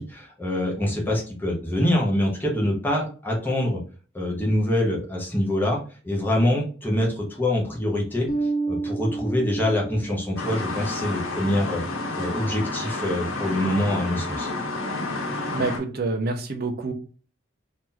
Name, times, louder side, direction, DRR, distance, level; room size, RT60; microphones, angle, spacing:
voice 1, 0.0-3.8 4.1-5.8 6.0-11.8 12.2-14.5, left 1 dB, 10° left, -3 dB, 1.0 m, -25 dB
Bass guitar, 8.3-10.7, right 3 dB, 25° left, 0.3 m, -30 dB
sound 1, 10.4-15.8, left 2 dB, 85° left, 0.9 m, -30 dB
voice 2, 15.5-16.9, right 3 dB, 50° right, 4 dB, 0.7 m, -27 dB
3.0 x 2.7 x 3.8 m, 0.39 s
head